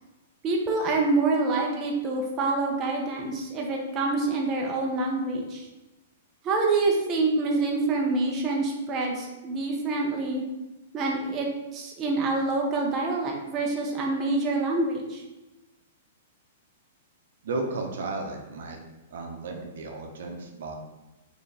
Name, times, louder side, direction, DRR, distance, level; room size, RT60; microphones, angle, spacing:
voice 1, 0.4-5.7 6.4-10.4 10.9-15.2, right 3 dB, 25° right, -1 dB, 0.6 m, -26 dB
voice 2, 17.4-18.8 19.1-20.8, right 3 dB, 70° right, 2 dB, 0.8 m, -34 dB
4.5 x 3.0 x 3.3 m, 1.1 s
hypercardioid pair, 145°, 0 cm